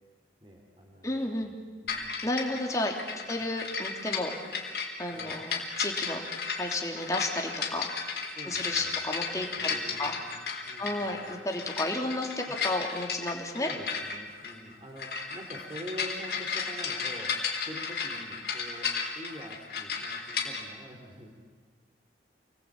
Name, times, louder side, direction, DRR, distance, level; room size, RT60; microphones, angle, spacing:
voice 1, 0.4-1.5 1.8-2.3 3.2-3.4 5.1-5.4 8.3-9.0 9.6-10.3 10.6-11.3 12.5-12.6 13.6-18.9 19.1-21.3, equal, 30° right, 0 dB, 3.4 m, -45 dB
voice 2, 1.0-1.5 2.2-2.9 3.3-4.3 5.0-6.2 6.6-7.9 8.5-10.2 10.8-13.7, left 2 dB, 20° left, 1 dB, 3.2 m, -32 dB
sound 1, 1.9-20.6, left 5 dB, 65° left, 3.9 m, -34 dB
28.0 x 20.5 x 8.8 m, 1.5 s
head